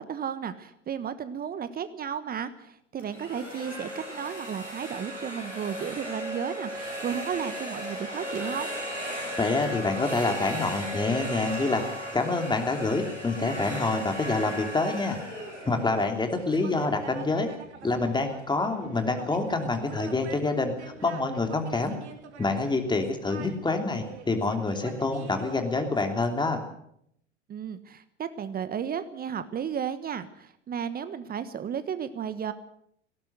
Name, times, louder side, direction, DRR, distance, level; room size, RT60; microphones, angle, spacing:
voice 1, 0.0-8.7 27.5-32.5, right 8 dB, 25° right, 13 dB, 1.2 m, -34 dB
sound 1, 3.0-16.8, equal, 80° right, 7.2 m, -36 dB
voice 2, 9.4-11.8 12.1-15.2 15.6-17.5 17.8-21.9 22.4-26.6, left 3 dB, 10° left, 5 dB, 3.1 m, -27 dB
sound 2, 15.3-26.3, right 6 dB, 65° right, 2.6 m, -46 dB
19.0 x 17.5 x 7.9 m, 0.72 s
figure-of-eight pair, 80°, 37 cm